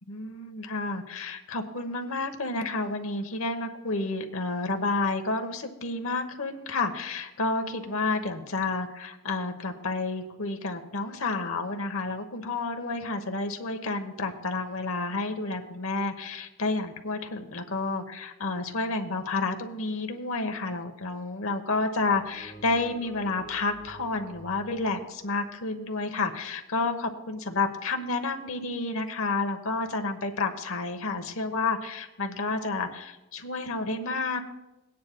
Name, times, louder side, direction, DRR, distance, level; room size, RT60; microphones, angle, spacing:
voice 1, 0.1-34.4, left 3 dB, 65° left, 6 dB, 1.0 m, -30 dB
sound 1, 21.9-26.3, right 1 dB, 5° left, 4.2 m, -49 dB
18.5 x 9.5 x 2.2 m, 0.97 s
head